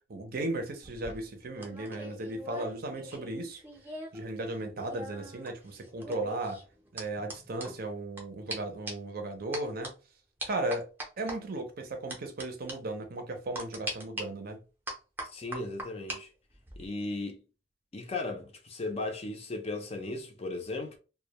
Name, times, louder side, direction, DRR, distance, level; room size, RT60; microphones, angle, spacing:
voice 1, 0.1-3.6 4.1-6.6 6.9-9.9 10.4-10.9 11.2-14.6, right 2 dB, 50° right, 0.5 m, -36 dB
sound 1, 0.8-4.2 4.5-8.2 8.5-8.6 8.9-9.1 9.5-9.9 10.4-11.4 12.1-12.4 12.7-12.8 13.5-14.2 14.9-16.2 16.5-16.9, right 1 dB, 10° right, 0.6 m, -41 dB
voice 2, 15.2-16.3 16.8-17.4 17.9-21.0, left 2 dB, 35° left, 0.5 m, -36 dB
2.1 x 2.1 x 2.9 m
head